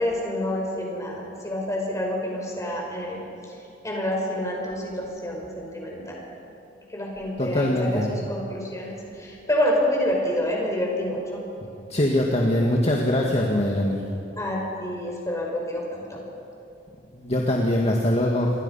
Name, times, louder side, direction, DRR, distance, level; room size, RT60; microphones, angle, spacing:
voice 1, 0.0-3.2 3.8-6.2 6.9-11.4 14.4-16.2, left 1 dB, 15° left, -2 dB, 5.7 m, -28 dB
voice 2, 7.4-8.1 11.9-14.0 17.1-18.5, left 1 dB, 35° left, -1 dB, 2.0 m, -22 dB
27.5 x 23.0 x 5.7 m, 2.7 s
head